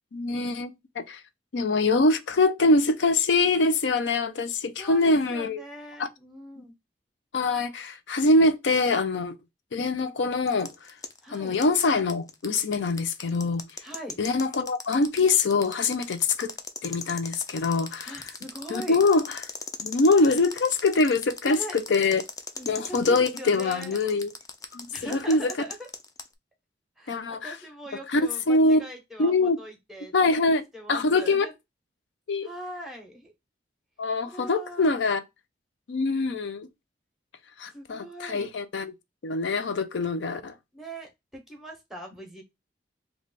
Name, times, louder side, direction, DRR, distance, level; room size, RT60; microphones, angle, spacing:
voice 1, 0.1-1.2 1.5-5.6 6.0-6.1 6.6-6.7 7.3-9.4 9.7-10.7 11.3-13.6 14.2-16.5 16.8-18.3 18.7-19.4 19.8-22.2 22.7-24.3 24.7-25.5 27.1-27.5 28.1-28.2 28.5-28.8 29.2-29.6 30.1-31.5 32.3-32.5 34.0-35.2 35.9-36.7 37.6-38.9 39.2-40.5, left 3 dB, 80° left, 0.5 m, -24 dB
voice 2, 4.8-6.7 11.2-11.6 13.8-14.2 17.5-17.6 18.1-19.0 21.4-21.8 22.6-24.0 24.9-25.9 27.0-30.4 30.7-31.5 32.4-33.3 34.2-35.0 37.7-38.5 40.7-42.4, right 1 dB, ahead, 1.0 m, -41 dB
sound 1, 10.5-26.3, left 5 dB, 20° left, 0.4 m, -38 dB
3.3 x 2.3 x 3.9 m
head